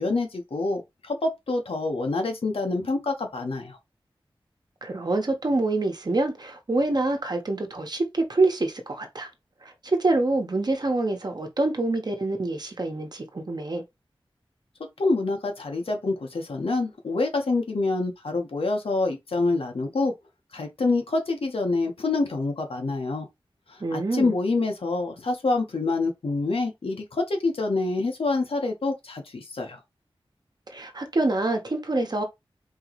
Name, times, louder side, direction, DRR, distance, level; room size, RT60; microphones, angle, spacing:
voice 1, 0.0-3.8 15.0-20.1 20.5-23.3 23.7-29.8, left 3 dB, 80° left, 1.2 m, -26 dB
voice 2, 4.8-9.3 9.6-13.8 23.8-24.3 30.7-32.2, right 2 dB, 45° right, 1.1 m, -26 dB
4.6 x 3.0 x 3.0 m
wide cardioid pair, 90°, 10 cm